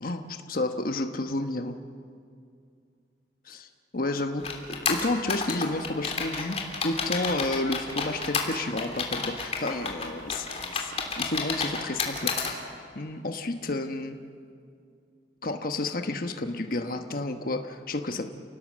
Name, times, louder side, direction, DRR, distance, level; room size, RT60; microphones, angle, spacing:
voice 1, 0.0-1.7 3.5-3.7 3.9-6.6 6.8-10.5 10.7-12.6 12.9-14.2 15.4-18.3, left 2 dB, 55° left, 6 dB, 1.2 m, -31 dB
sound 1, 4.4-12.5, left 4 dB, 35° left, 3.2 m, -30 dB
30.0 x 18.5 x 7.5 m, 2.3 s
head